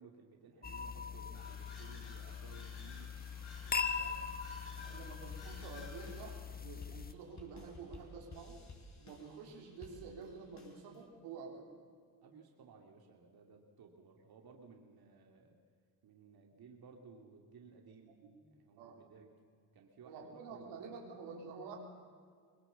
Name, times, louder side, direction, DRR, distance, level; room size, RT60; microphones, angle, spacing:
voice 1, 0.0-3.3 3.6-4.2 4.7-5.1 12.2-15.6 16.0-18.1 18.5-19.3 19.7-20.9, right 5 dB, 60° right, 2 dB, 2.9 m, -58 dB
sound 1, 0.6-7.1, left 5 dB, 20° left, 1.3 m, -41 dB
sound 2, 1.3-6.5, left 3 dB, 85° left, 6.8 m, -56 dB
sound 3, 4.8-11.0, left 2 dB, 40° left, 5.1 m, -56 dB
voice 2, 4.9-8.6 9.0-11.7 18.1-18.3 18.8-19.0 20.0-21.8, right 5 dB, 90° right, 0 dB, 3.9 m, -49 dB
23.5 x 20.0 x 7.1 m, 2.1 s
supercardioid pair, 70°, 41 cm